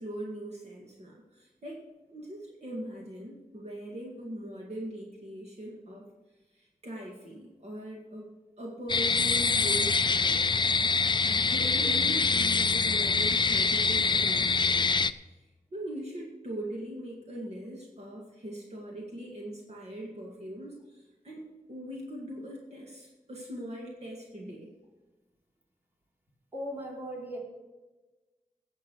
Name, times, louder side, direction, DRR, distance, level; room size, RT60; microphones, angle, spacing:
voice 1, 0.0-6.0 6.5-8.3 8.6-10.5 11.3-14.9 15.3-15.4 15.7-24.7, right 1 dB, 50° right, -3 dB, 2.0 m, -41 dB
sound 1, 8.9-15.1, left 4 dB, 35° left, 0.4 m, -25 dB
voice 2, 26.5-27.4, equal, 15° right, -3 dB, 3.3 m, -37 dB
18.0 x 7.4 x 4.7 m, 1.2 s
wide cardioid pair, 120°, 14 cm